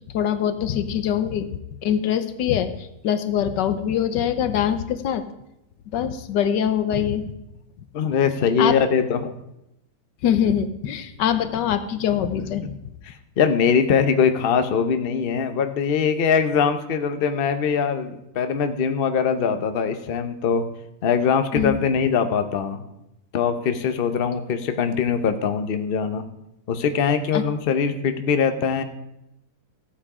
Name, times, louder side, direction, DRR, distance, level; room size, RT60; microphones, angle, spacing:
voice 1, 0.1-5.2 5.9-7.2 8.6-8.7 10.2-12.7 21.5-21.8 27.3-27.4, left 9 dB, 85° left, 11 dB, 1.5 m, -23 dB
voice 2, 7.9-9.3 13.1-20.6 21.0-22.8 23.3-26.2 26.7-28.8, left 6 dB, 45° left, 9 dB, 0.8 m, -22 dB
14.5 x 8.6 x 4.9 m, 0.87 s
omnidirectional pair, 1.8 m